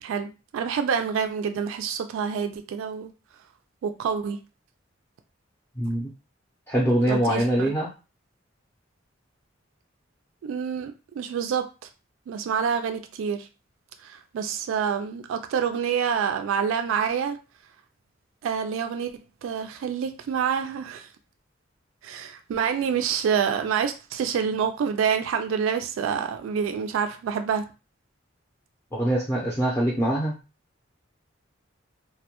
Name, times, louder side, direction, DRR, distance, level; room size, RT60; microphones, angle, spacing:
voice 1, 0.0-3.1 3.8-4.4 7.0-7.7 10.4-11.9 12.3-13.5 14.0-17.4 18.4-21.1 22.0-27.7, right 7 dB, 90° right, 0.3 m, -27 dB
voice 2, 5.8-6.1 6.7-7.9 28.9-30.3, right 1 dB, 10° left, 0.5 m, -23 dB
2.1 x 2.1 x 2.8 m
head